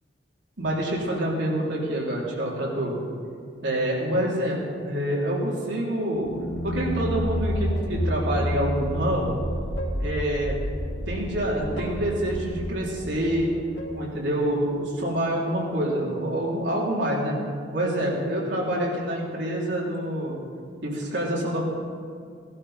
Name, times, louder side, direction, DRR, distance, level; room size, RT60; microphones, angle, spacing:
voice 1, 0.6-3.1 3.6-6.3 6.6-9.4 10.0-10.6 11.1-13.5 13.9-17.4 17.7-20.4 20.8-21.7, right 1 dB, 70° right, -4 dB, 3.4 m, -27 dB
sound 1, 6.2-14.7, equal, 75° left, 3.0 m, -30 dB
18.5 x 12.0 x 4.3 m, 2.4 s
head